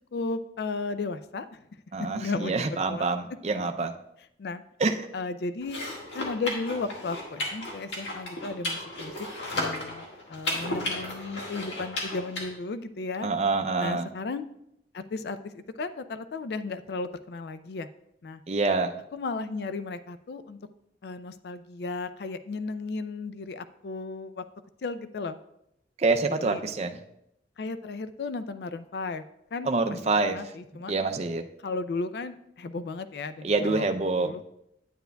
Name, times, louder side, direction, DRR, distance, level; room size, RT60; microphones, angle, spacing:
voice 1, 0.1-1.6 2.1-3.0 4.4-4.6 5.1-5.8 6.1-9.1 9.5-13.3 13.8-14.5 14.9-17.9 18.2-18.4 19.1-20.6 21.0-24.4 24.8-25.4 26.4-26.6 27.6-29.2 29.5-29.7 30.3-30.9 31.6-33.9 34.2-34.5, left 3 dB, 60° left, 12 dB, 0.4 m, -34 dB
voice 2, 1.9-3.9 4.8-5.0 13.2-14.1 18.5-18.9 26.0-27.0 29.6-30.4 30.9-31.4 33.4-34.4, right 3 dB, 35° right, 6 dB, 0.4 m, -26 dB
sound 1, 5.6-12.4, left 1 dB, 75° left, 1.7 m, -34 dB
9.2 x 9.1 x 2.2 m, 0.80 s
head